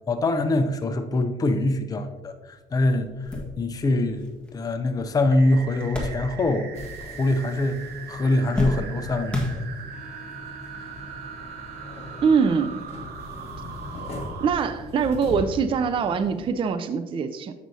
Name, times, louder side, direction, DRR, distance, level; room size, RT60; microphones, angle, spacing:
voice 1, 0.1-6.7 7.0-9.6, left 2 dB, 20° left, 7 dB, 0.5 m, -24 dB
sound 1, 2.5-2.6 3.0-6.8 7.0-7.7 8.0-10.1 10.9-11.0 12.3-12.4, left 1 dB, 5° left, 1.4 m, -33 dB
sound 2, 5.3-14.5, right 8 dB, 70° right, 0.7 m, -41 dB
sound 3, 6.7-16.5, left 2 dB, 35° left, 1.7 m, -40 dB
voice 2, 12.2-12.8 14.4-17.5, right 6 dB, 30° right, 10 dB, 0.4 m, -23 dB
7.5 x 6.1 x 2.7 m, 1.2 s
cardioid pair, 110°, 17 cm